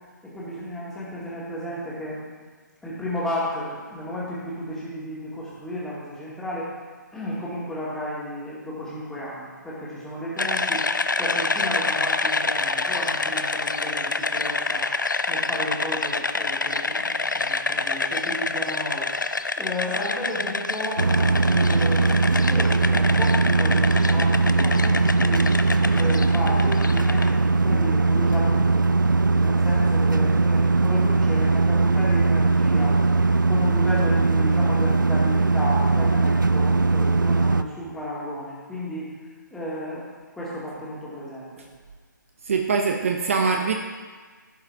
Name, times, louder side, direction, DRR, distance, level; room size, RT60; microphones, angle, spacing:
voice 1, 0.2-2.3 2.8-6.7 7.1-19.1 19.6-25.5 25.9-27.3 27.6-33.0 33.5-39.1 39.5-41.7, equal, 5° left, -8 dB, 2.2 m, -33 dB
sound 1, 10.4-27.3, left 3 dB, 75° left, 0.6 m, -27 dB
sound 2, 21.0-37.6, right 3 dB, 80° right, 0.5 m, -20 dB
voice 2, 42.4-43.7, right 5 dB, 40° right, 3 dB, 0.7 m, -23 dB
15.5 x 5.6 x 3.5 m, 1.5 s
figure-of-eight pair, 140°, 11 cm